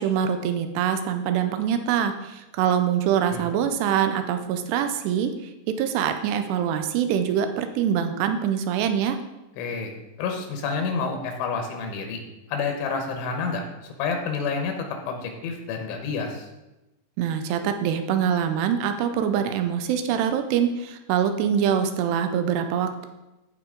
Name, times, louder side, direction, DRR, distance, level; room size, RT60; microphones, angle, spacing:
voice 1, 0.0-9.2 17.2-23.1, right 8 dB, 80° right, 8 dB, 2.5 m, -24 dB
voice 2, 9.6-9.9 10.2-12.2 12.5-13.6 14.0-16.5, left 5 dB, 80° left, 4 dB, 3.4 m, -29 dB
14.5 x 4.9 x 3.8 m, 0.99 s
omnidirectional pair, 5.4 m